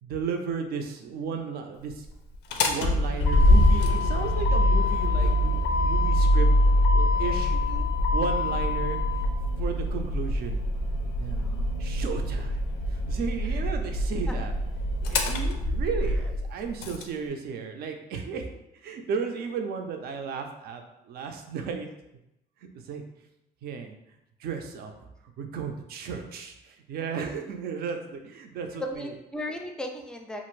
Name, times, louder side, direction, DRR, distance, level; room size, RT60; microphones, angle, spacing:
voice 1, 0.0-2.1 2.6-6.5 6.9-7.6 8.1-9.3 9.6-10.6 11.2-11.5 11.8-12.6 12.9-14.5 15.1-18.5 18.7-21.9 22.8-23.0 23.6-23.9 24.4-24.9 25.4-29.1, right 6 dB, 65° right, 5 dB, 0.5 m, -34 dB
Motor vehicle (road), 2.3-17.0, left 1 dB, 85° left, 0.4 m, -24 dB
voice 2, 7.5-7.9 11.4-11.7 13.4-13.7 14.3-14.4 16.0-16.3 19.4-19.5 28.7-30.5, left 1 dB, 5° left, 3 dB, 0.4 m, -38 dB
2.5 x 2.5 x 3.1 m, 0.87 s
cardioid pair, 110°, 17 cm